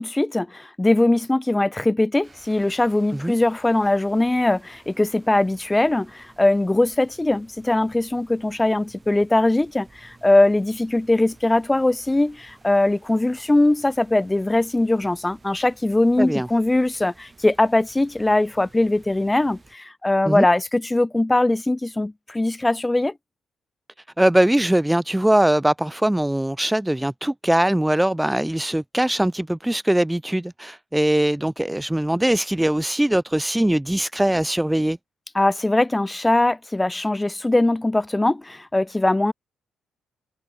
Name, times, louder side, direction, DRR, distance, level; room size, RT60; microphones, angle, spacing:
voice 1, 0.0-23.1 35.3-39.3, left 2 dB, 15° left, 0.7 m, -21 dB
sound 1, 2.2-19.8, right 3 dB, 25° right, 4.7 m, -53 dB
voice 2, 24.2-35.0, right 1 dB, 5° right, 0.3 m, -21 dB
cardioid pair, 90°, 0 cm